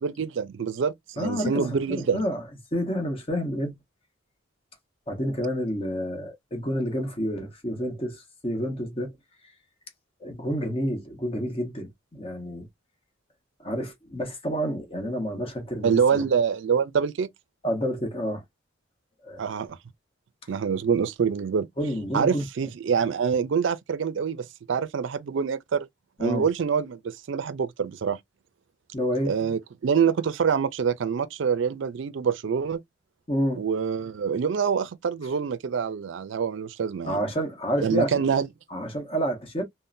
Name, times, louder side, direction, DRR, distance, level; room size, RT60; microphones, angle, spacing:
voice 1, 0.0-2.2 15.8-17.3 19.4-19.8 20.5-21.7 22.1-25.9 26.2-28.2 29.3-32.8 33.5-37.2 37.8-38.5, right 6 dB, 65° right, 0.4 m, -25 dB
voice 2, 1.2-2.4 2.7-3.8 5.1-9.1 10.2-12.7 13.6-16.2 17.6-18.4 19.2-19.4 21.8-22.4 26.2-26.5 28.9-29.3 33.3-33.6 37.0-38.2 38.7-39.6, equal, 30° left, 1.0 m, -29 dB
3.6 x 2.0 x 2.5 m
head